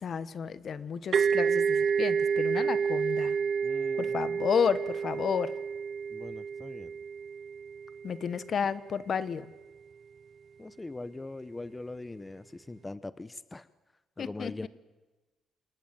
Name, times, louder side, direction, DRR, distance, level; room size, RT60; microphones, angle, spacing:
voice 1, 0.0-3.4 4.0-5.5 8.0-9.4 14.2-14.7, left 7 dB, 55° left, 15 dB, 1.3 m, -31 dB
sound 1, 1.1-8.7, right 6 dB, 50° right, 0.8 m, -29 dB
voice 2, 3.6-4.2 6.1-6.9 10.6-13.7 14.2-14.7, left 2 dB, 20° left, 15 dB, 0.8 m, -41 dB
27.0 x 20.0 x 9.3 m, 1.2 s
cardioid pair, 90°, 0 cm